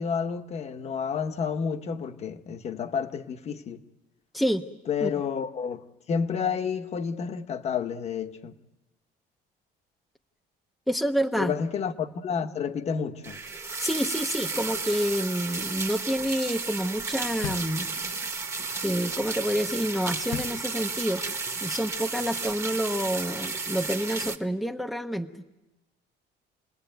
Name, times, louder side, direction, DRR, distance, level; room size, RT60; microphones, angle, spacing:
voice 1, 0.0-3.8 4.9-8.6 11.4-13.4, left 6 dB, 35° left, 1.3 m, -30 dB
voice 2, 10.9-11.5 13.8-17.9 18.8-21.2 21.6-25.3, equal, ahead, 0.9 m, -28 dB
sound 1, 13.2-24.4, right 4 dB, 15° right, 1.3 m, -33 dB
sound 2, 17.4-18.3 20.3-21.2, left 11 dB, 85° left, 0.9 m, -38 dB
29.5 x 20.5 x 9.2 m
cardioid pair, 160°, 18 cm